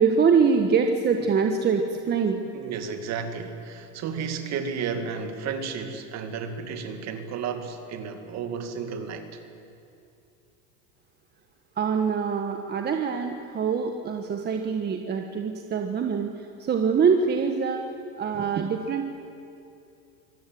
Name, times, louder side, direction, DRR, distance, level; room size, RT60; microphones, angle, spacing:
voice 1, 0.0-2.4 11.8-16.3 16.6-17.8 18.2-19.1, right 6 dB, 25° right, 4 dB, 1.3 m, -24 dB
voice 2, 2.5-9.4, right 6 dB, 40° right, 7 dB, 2.3 m, -33 dB
24.5 x 17.5 x 7.8 m, 2.6 s
supercardioid pair, 130°, 41 cm